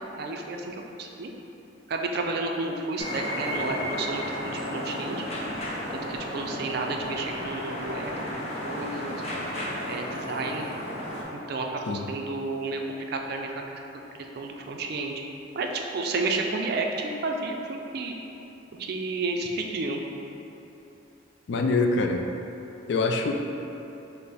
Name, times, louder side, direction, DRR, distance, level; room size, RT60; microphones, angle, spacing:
voice 1, 0.1-1.3 1.9-5.2 5.9-8.1 8.6-9.1 9.9-10.7 11.3-12.8 13.1-13.8 14.3-15.2 15.5-18.1 18.8-20.0, right 3 dB, 55° right, 2 dB, 0.4 m, -31 dB
sound 1, 3.0-11.2, equal, 35° left, 0.7 m, -33 dB
voice 2, 21.5-22.3 22.9-23.3, left 3 dB, 60° left, 3 dB, 0.3 m, -24 dB
5.3 x 2.1 x 4.0 m, 3.0 s
head